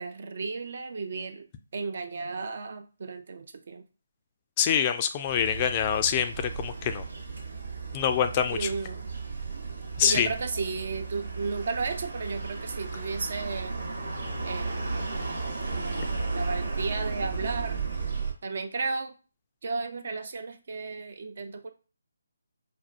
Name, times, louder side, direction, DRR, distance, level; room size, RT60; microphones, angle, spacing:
voice 1, 0.0-1.5 1.7-3.8 8.5-9.1 10.0-13.8 14.4-14.8 15.7-16.1 16.3-17.8 18.4-19.1 19.6-21.7, right 4 dB, 50° right, 8 dB, 0.5 m, -34 dB
voice 2, 4.6-7.0 7.9-8.7 10.0-10.3, left 9 dB, 25° left, 8 dB, 0.3 m, -25 dB
sound 1, 5.3-18.3, right 4 dB, 75° right, 1.1 m, -34 dB
4.7 x 2.1 x 2.4 m, 0.35 s
figure-of-eight pair, 150°, 0 cm